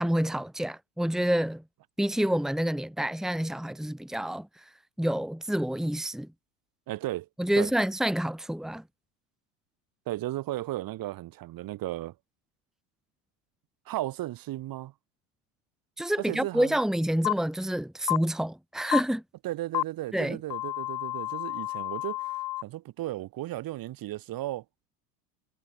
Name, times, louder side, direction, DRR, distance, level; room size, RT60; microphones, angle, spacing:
voice 1, 0.0-1.6 2.0-4.7 5.0-6.3 7.4-8.8 16.0-19.2 20.1-20.4, right 1 dB, ahead, 2.6 m, -28 dB
voice 2, 6.9-7.3 7.6-7.7 10.1-12.1 13.9-14.9 16.2-16.8 19.4-24.6, right 15 dB, 50° right, 5.3 m, -35 dB
sound 1, 17.2-17.3 18.1-18.2 18.9-19.0 19.7-19.8 20.5-22.6, left 18 dB, 50° left, 2.3 m, -30 dB
supercardioid pair, 110°, 45 cm